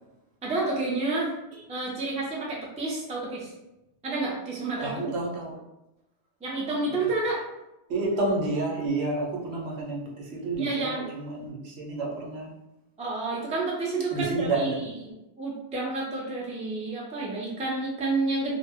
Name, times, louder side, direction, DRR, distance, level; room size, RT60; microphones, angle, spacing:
voice 1, 0.4-1.3 1.7-3.5 4.0-5.0 6.4-7.4 10.6-11.0 13.0-18.6, right 3 dB, 10° right, -4 dB, 0.4 m, -30 dB
voice 2, 4.8-5.5 7.9-12.5 14.1-15.1, right 2 dB, 70° right, -2 dB, 0.9 m, -30 dB
2.2 x 2.0 x 3.5 m, 0.93 s
omnidirectional pair, 1.1 m